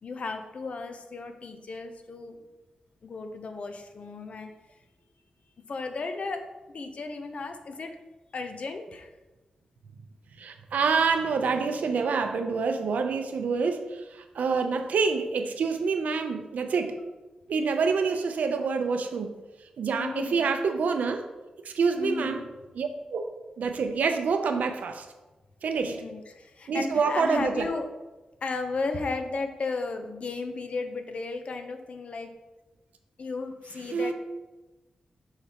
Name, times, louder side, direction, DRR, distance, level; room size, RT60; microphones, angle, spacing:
voice 1, 0.0-2.4 3.0-4.5 5.7-7.9 8.3-9.1 20.0-20.4 22.0-22.5 25.8-27.9 28.4-32.3 33.2-34.1, left 3 dB, 55° left, 6 dB, 0.6 m, -34 dB
voice 2, 10.4-17.0 17.5-19.3 19.8-21.2 21.6-22.4 22.8-23.3 23.6-25.1 25.6-26.0 26.7-27.7 33.9-34.1, right 5 dB, 90° right, 6 dB, 0.6 m, -27 dB
7.2 x 4.9 x 2.9 m, 1.1 s
wide cardioid pair, 115°, 3 cm